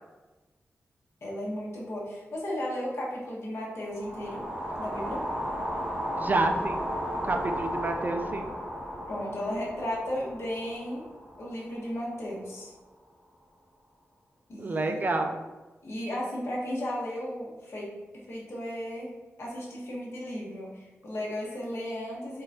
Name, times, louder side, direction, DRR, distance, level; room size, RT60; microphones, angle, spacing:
voice 1, 1.2-4.4 4.8-5.2 9.1-11.1 11.4-12.7 14.5-15.0 15.8-17.9 18.3-19.1 19.4-22.4, left 1 dB, 60° left, -5 dB, 1.2 m, -35 dB
sound 1, 3.9-12.1, equal, 15° right, 0.9 m, -35 dB
voice 2, 6.2-6.9 7.2-8.5 14.6-15.4, right 2 dB, 35° right, 5 dB, 0.4 m, -28 dB
3.8 x 3.7 x 2.8 m, 1.2 s
cardioid pair, 80°, 5 cm